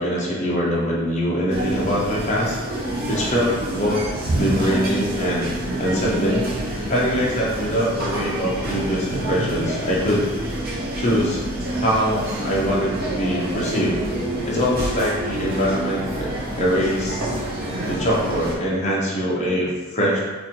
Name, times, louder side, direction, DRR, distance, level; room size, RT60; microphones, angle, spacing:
voice 1, 0.0-2.6 3.1-4.0 4.3-5.5 5.8-6.5 6.9-10.3 11.0-11.4 11.8-14.0 14.4-16.3 16.6-17.3 17.9-20.2, equal, 35° left, -5 dB, 0.8 m, -23 dB
sound 1, 1.5-18.6, right 1 dB, 45° right, 0.6 m, -27 dB
4.1 x 2.5 x 2.8 m, 1.3 s
head